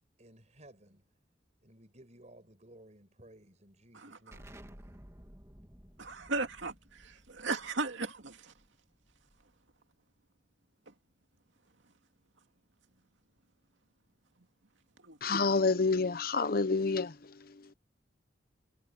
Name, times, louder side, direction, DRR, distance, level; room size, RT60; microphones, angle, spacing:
voice 1, 0.2-1.0 1.6-5.0, right 1 dB, 40° right, 5.8 m, -57 dB
Explosion, 4.3-9.7, equal, 15° right, 2.3 m, -55 dB
voice 2, 6.0-8.5 15.0-15.2, right 3 dB, 85° right, 2.3 m, -36 dB
voice 3, 15.2-17.7, left 4 dB, 50° left, 0.9 m, -29 dB
head